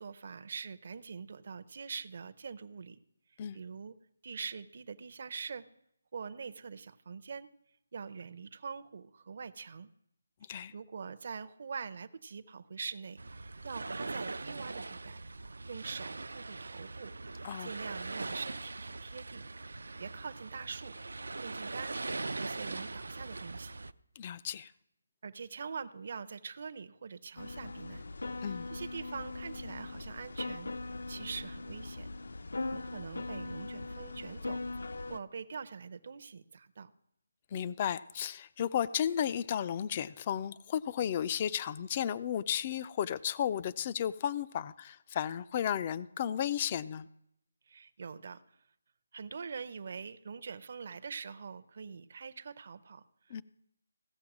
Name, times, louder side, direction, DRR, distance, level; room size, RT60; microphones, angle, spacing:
voice 1, 0.0-3.0 3.5-3.9 4.2-5.6 6.1-7.5 7.9-9.9 10.7-15.2 15.7-17.1 17.6-19.4 20.0-21.0 21.4-22.0 22.3-23.8 24.5-24.7 25.2-28.0 28.7-30.7 31.1-32.1 32.7-36.9 47.7-48.4 49.1-53.4, right 5 dB, 40° right, 13 dB, 0.6 m, -44 dB
sound 1, 13.2-23.9, right 3 dB, 85° right, 0.5 m, -41 dB
voice 2, 24.2-24.7 28.4-28.7 37.5-47.1 53.3-53.4, left 9 dB, 20° left, 16 dB, 0.4 m, -33 dB
sound 2, 27.4-35.2, left 2 dB, 75° left, 0.6 m, -40 dB
16.0 x 6.9 x 6.0 m, 0.77 s
hypercardioid pair, 175°, 0 cm